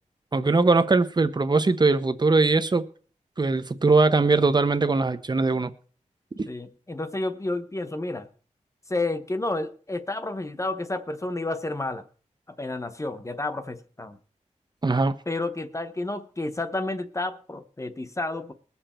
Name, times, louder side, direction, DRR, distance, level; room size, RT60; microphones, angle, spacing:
voice 1, 0.3-2.9 3.4-5.7 6.4-6.5 14.8-15.2, right 3 dB, 35° right, 0.9 m, -21 dB
voice 2, 6.4-8.3 8.9-12.0 12.6-14.2 15.3-18.5, left 2 dB, 25° left, 1.0 m, -30 dB
21.0 x 7.2 x 4.4 m
wide cardioid pair, 95°, 13 cm